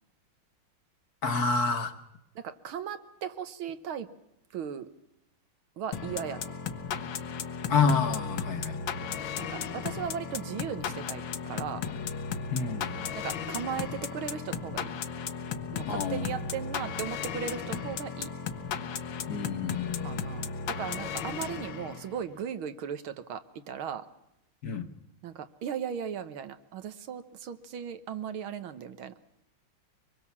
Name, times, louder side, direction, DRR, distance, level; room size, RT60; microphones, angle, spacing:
voice 1, 1.2-1.9 7.7-8.8 12.5-12.9 15.5-15.6 15.9-16.4 19.3-20.3 24.6-24.9, left 4 dB, 50° left, 8 dB, 1.6 m, -28 dB
voice 2, 2.4-4.1 4.5-4.9 5.8-6.5 9.4-11.8 13.2-14.9 15.7-18.3 20.0-24.0 25.2-29.1, right 8 dB, 80° right, 11 dB, 1.9 m, -37 dB
sound 1, 5.9-22.2, left 6 dB, 70° left, 1.8 m, -35 dB
24.5 x 21.5 x 7.3 m, 0.83 s
omnidirectional pair, 2.3 m